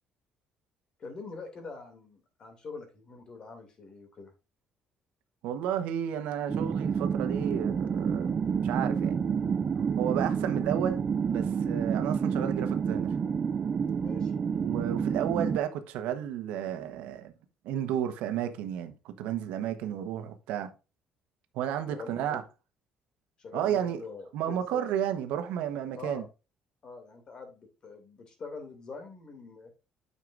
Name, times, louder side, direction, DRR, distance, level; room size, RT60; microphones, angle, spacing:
voice 1, 1.0-4.3 14.0-14.3 21.9-22.4 23.4-24.8 26.0-26.3 26.8-29.7, left 4 dB, 40° left, 2.6 m, -44 dB
voice 2, 5.4-8.4 8.6-9.4 10.0-11.0 11.3-13.1 14.6-17.3 17.6-20.7 21.5-22.4 23.5-24.0 24.3-26.2, right 10 dB, 85° right, 1.1 m, -32 dB
sound 1, 6.5-15.6, right 6 dB, 30° right, 0.4 m, -29 dB
9.3 x 6.6 x 2.6 m
cardioid pair, 140°, 2 cm